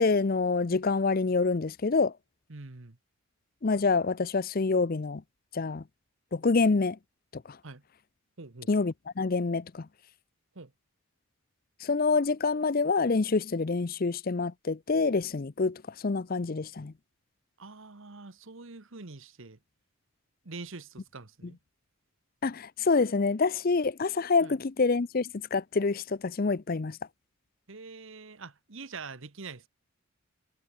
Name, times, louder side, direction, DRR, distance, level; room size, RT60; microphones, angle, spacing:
voice 1, 0.0-2.1 3.6-5.2 5.5-5.8 6.3-7.0 7.3-7.6 8.7-9.9 11.8-16.9 22.4-27.0, left 4 dB, 40° left, 0.5 m, -27 dB
voice 2, 2.5-3.0 7.6-7.8 8.4-8.7 10.5-10.7 17.6-19.6 20.4-21.6 24.4-24.6 27.7-29.7, right 4 dB, 60° right, 1.3 m, -44 dB
head